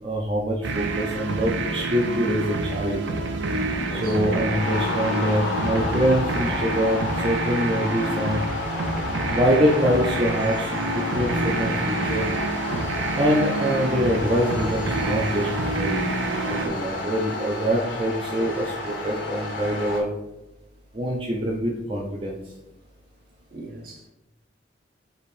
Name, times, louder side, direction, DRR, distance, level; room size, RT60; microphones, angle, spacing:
voice 1, 0.0-3.0 3.9-8.5 9.3-12.3 13.2-16.0 16.5-20.1 20.9-22.4, equal, 30° right, -3 dB, 0.5 m, -24 dB
sound 1, 0.6-16.7, right 3 dB, 90° right, 0.5 m, -28 dB
sound 2, 2.1-20.0, left 3 dB, 85° left, 1.0 m, -32 dB
voice 2, 3.8-4.2 12.7-13.0 16.6-16.9 23.5-24.1, right 1 dB, 50° right, 0 dB, 0.9 m, -37 dB
4.7 x 2.7 x 3.2 m, 0.97 s
head